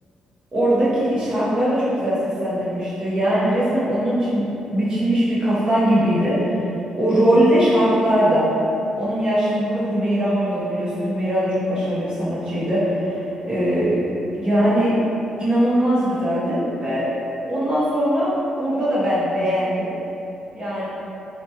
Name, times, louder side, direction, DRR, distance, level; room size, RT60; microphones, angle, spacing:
voice 1, 0.5-6.5 6.9-8.5 9.0-14.1 14.4-15.0 15.4-17.0 17.4-18.3 18.6-19.9 20.5-20.9, equal, 40° right, -10 dB, 1.2 m, -20 dB
2.9 x 2.2 x 3.0 m, 2.9 s
hypercardioid pair, 45°, 2 cm